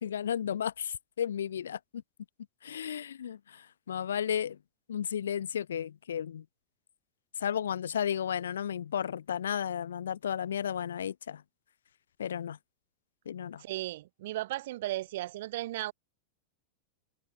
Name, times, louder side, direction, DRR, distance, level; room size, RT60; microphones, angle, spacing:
voice 1, 0.0-1.8 2.6-4.6 4.9-6.4 7.4-11.4 12.2-12.6 13.3-13.6, left 9 dB, 65° left, 1.8 m, -33 dB
voice 2, 13.6-15.9, right 16 dB, 55° right, 3.1 m, -35 dB
figure-of-eight pair, 90°, 0 cm